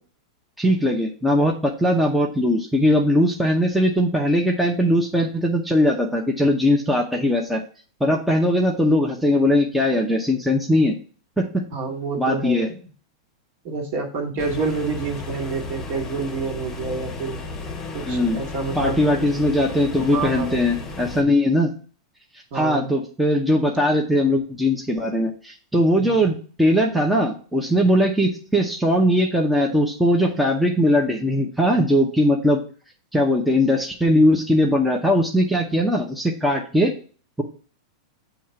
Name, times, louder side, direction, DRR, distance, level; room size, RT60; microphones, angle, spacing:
voice 1, 0.6-7.6 8.0-10.9 11.4-11.6 12.2-12.7 18.1-18.4 18.8-21.7 22.5-32.6 33.1-36.9, left 1 dB, ahead, 0 dB, 0.7 m, -20 dB
voice 2, 11.7-12.8 13.6-17.4 17.9-19.2 20.1-20.6 22.5-22.9 25.9-26.2 31.4-31.5, right 4 dB, 50° right, 1 dB, 1.7 m, -28 dB
sound 1, 14.4-21.2, left 3 dB, 20° left, 1.0 m, -34 dB
7.0 x 2.9 x 5.7 m, 0.41 s
hypercardioid pair, 135°, 3 cm